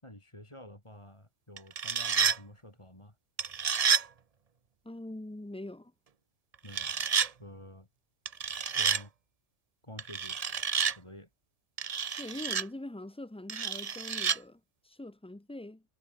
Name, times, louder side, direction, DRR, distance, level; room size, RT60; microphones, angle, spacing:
voice 1, 0.0-3.2 6.6-6.9 7.4-7.9 8.7-9.1 9.8-10.4 10.9-11.3, left 1 dB, 25° left, 5.4 m, -49 dB
sound 1, 1.6-2.4 3.4-4.1 6.7-7.3 8.3-9.0 10.0-11.0 11.8-12.6 13.5-14.4, right 6 dB, 40° right, 0.7 m, -29 dB
voice 2, 4.8-5.9 12.2-15.8, left 1 dB, 5° left, 0.6 m, -43 dB
omnidirectional pair, 1.3 m